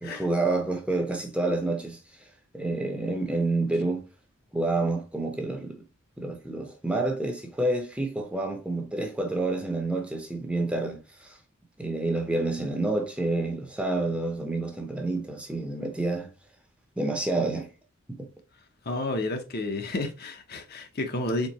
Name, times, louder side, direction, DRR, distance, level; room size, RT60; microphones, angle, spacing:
voice 1, 0.0-2.0 2.5-4.0 4.5-5.8 6.2-11.4 11.8-16.3 17.0-17.7 18.1-18.3, right 2 dB, 5° right, 0.7 m, -28 dB
voice 2, 18.9-21.5, left 2 dB, 50° left, 0.7 m, -31 dB
4.4 x 3.8 x 2.9 m
head